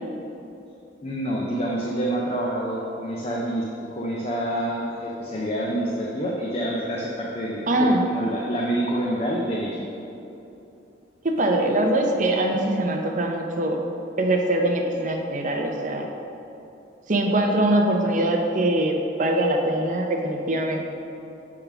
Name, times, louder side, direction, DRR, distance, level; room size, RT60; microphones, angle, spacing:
voice 1, 1.0-3.6 3.9-9.8, right 1 dB, 30° left, -3 dB, 0.6 m, -27 dB
voice 2, 7.7-8.1 11.2-13.8 14.2-16.1 17.1-20.9, right 1 dB, 40° right, 2 dB, 0.6 m, -22 dB
6.8 x 3.6 x 5.9 m, 2.9 s
head